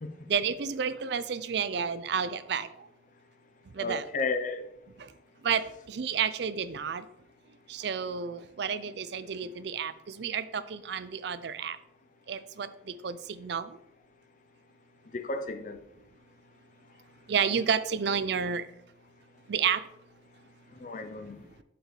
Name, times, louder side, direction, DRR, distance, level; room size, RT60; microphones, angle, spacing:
voice 1, 0.3-2.7 3.8-4.1 5.4-5.6 5.9-7.0 7.7-11.8 12.3-12.7 13.0-13.7 17.3-18.6 19.5-19.8, right 7 dB, 60° right, 15 dB, 0.4 m, -30 dB
voice 2, 3.8-4.7 9.4-9.5 15.1-15.8 20.8-21.4, left 3 dB, 40° left, 8 dB, 0.5 m, -33 dB
7.7 x 5.2 x 3.2 m, 0.82 s
head